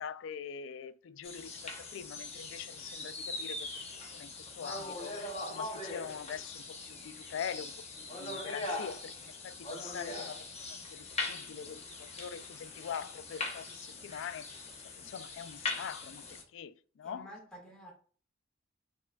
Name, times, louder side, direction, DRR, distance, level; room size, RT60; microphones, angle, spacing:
voice 1, 0.0-3.7 4.1-10.4 10.9-14.5 14.8-17.3, left 7 dB, 70° left, 0.3 m, -44 dB
sound 1, 1.2-16.4, left 3 dB, 35° left, 0.8 m, -41 dB
voice 2, 17.0-17.9, equal, 5° left, 1.6 m, -51 dB
4.5 x 3.6 x 2.2 m
head